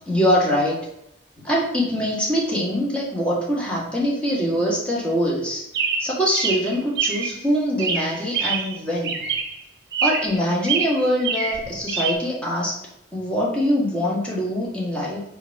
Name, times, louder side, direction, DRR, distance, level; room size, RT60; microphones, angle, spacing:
voice 1, 0.1-0.9 1.4-5.7 6.0-9.1 10.0-12.8 13.1-15.2, equal, 5° left, -6 dB, 1.7 m, -23 dB
Chirp tweet, 5.7-7.4 7.8-8.8 9.0-9.6 9.9-10.4 10.6-12.1, right 5 dB, 55° right, 0.9 m, -25 dB
7.1 x 3.0 x 5.8 m, 0.78 s
head